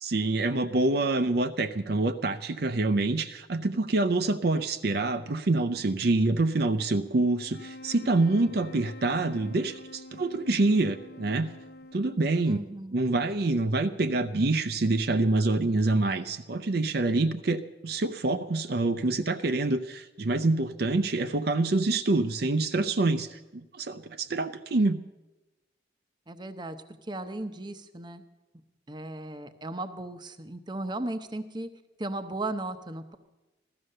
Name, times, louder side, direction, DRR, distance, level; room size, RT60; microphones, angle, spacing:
voice 1, 0.0-11.5 11.9-12.6 12.9-25.0, right 2 dB, 55° right, 9 dB, 0.6 m, -26 dB
sound 1, 7.4-12.8, left 2 dB, 50° left, 0.7 m, -46 dB
voice 2, 12.5-12.9 26.3-28.2 28.9-31.7 32.0-33.2, right 2 dB, 25° right, 9 dB, 0.7 m, -36 dB
15.5 x 13.0 x 6.6 m, 1.1 s
head